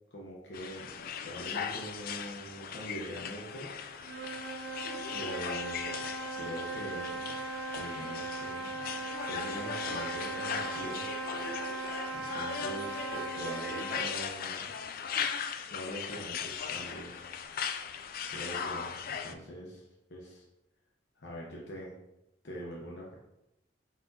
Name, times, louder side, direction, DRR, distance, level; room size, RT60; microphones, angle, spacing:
voice 1, 0.1-3.7 5.1-6.1 6.3-7.3 7.7-8.8 9.1-11.0 12.1-14.7 15.7-17.3 18.3-19.8 20.1-20.4 21.2-21.9 22.4-23.1, equal, 75° left, -4 dB, 0.8 m, -43 dB
sound 1, 0.5-19.3, left 7 dB, 55° left, 0.3 m, -38 dB
sound 2, 3.9-14.2, right 3 dB, 60° right, 0.4 m, -38 dB
4.2 x 4.0 x 2.7 m, 0.90 s
head